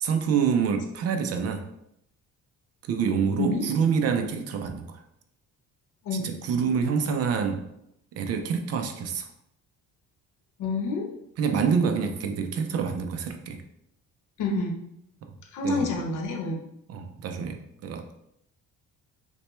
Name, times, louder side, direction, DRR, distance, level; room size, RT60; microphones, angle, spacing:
voice 1, 0.0-1.6 2.8-5.0 6.1-7.7 8.1-9.3 11.4-13.6 15.3-15.4 15.6-16.1 16.9-18.1, right 6 dB, 50° right, 6 dB, 0.5 m, -27 dB
voice 2, 10.6-11.1 14.4-14.8 15.5-16.6, left 3 dB, 70° left, 2 dB, 0.9 m, -28 dB
6.0 x 2.2 x 3.1 m, 0.79 s
cardioid pair, 165°, 32 cm